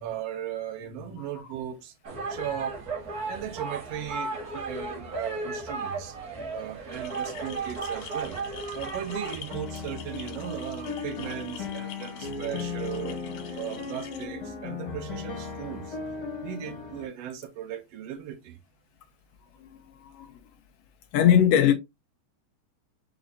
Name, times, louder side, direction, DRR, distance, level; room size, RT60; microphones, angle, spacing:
voice 1, 0.0-1.9 2.3-2.8 3.3-6.2 6.5-8.4 8.7-13.2 13.4-16.0 16.4-18.6, right 11 dB, 75° right, 1.5 m, -37 dB
sound 1, 2.0-9.5, right 3 dB, 45° right, 1.2 m, -35 dB
sound 2, 6.9-14.3, left 9 dB, 70° left, 1.6 m, -46 dB
sound 3, 9.5-17.1, left 5 dB, 50° left, 2.1 m, -36 dB
voice 2, 19.6-20.3 21.1-21.7, left 9 dB, 90° left, 1.4 m, -21 dB
4.9 x 3.9 x 2.7 m
omnidirectional pair, 3.5 m